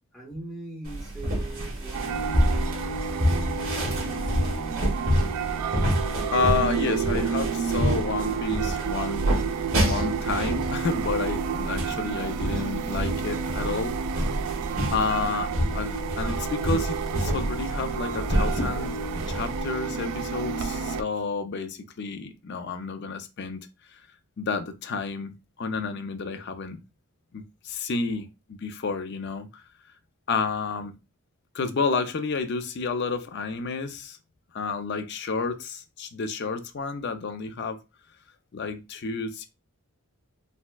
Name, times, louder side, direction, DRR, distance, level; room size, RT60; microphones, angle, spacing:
voice 1, 0.1-2.5 3.0-5.2 27.9-28.2, right 2 dB, ahead, 0.7 m, -42 dB
sound 1, 0.9-19.6, equal, 65° right, 1.3 m, -28 dB
sound 2, 1.9-21.0, right 6 dB, 85° right, 0.3 m, -30 dB
voice 2, 6.3-9.2 9.8-14.0 14.9-19.0 19.3-24.0 24.4-25.3 25.6-26.8 27.3-29.6 30.3-30.9 31.5-34.2 34.5-37.8 38.5-39.5, left 4 dB, 50° left, 0.4 m, -30 dB
4.1 x 2.1 x 2.2 m
head